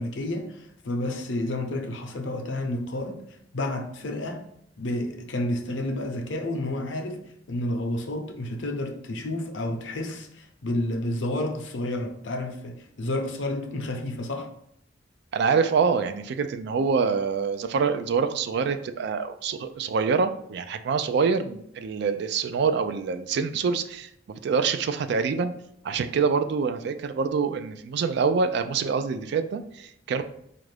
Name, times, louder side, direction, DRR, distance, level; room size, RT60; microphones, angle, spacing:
voice 1, 0.0-3.2 3.5-4.4 4.8-7.2 7.5-14.5, left 1 dB, 80° left, 0.6 m, -30 dB
voice 2, 15.3-24.1 24.4-25.5 25.8-30.2, right 5 dB, 65° right, 0.3 m, -25 dB
4.3 x 2.5 x 3.3 m
head